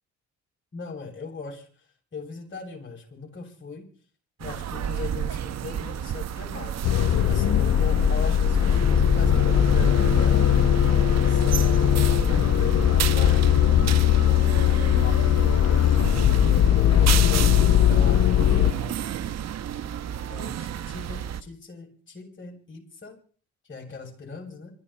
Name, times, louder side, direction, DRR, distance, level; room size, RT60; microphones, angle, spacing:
voice 1, 0.7-1.7 2.1-3.9 4.4-6.8 7.1-10.4 11.2-13.9 14.2-15.6 16.7-19.0 20.3-23.2 23.7-24.7, left 4 dB, 40° left, 1 dB, 7.6 m, -39 dB
sound 1, 4.4-21.4, right 9 dB, 60° right, 1.1 m, -31 dB
sound 2, 6.8-18.7, left 10 dB, 55° left, 0.9 m, -20 dB
26.5 x 11.0 x 4.4 m, 0.43 s
cardioid pair, 90°, 30 cm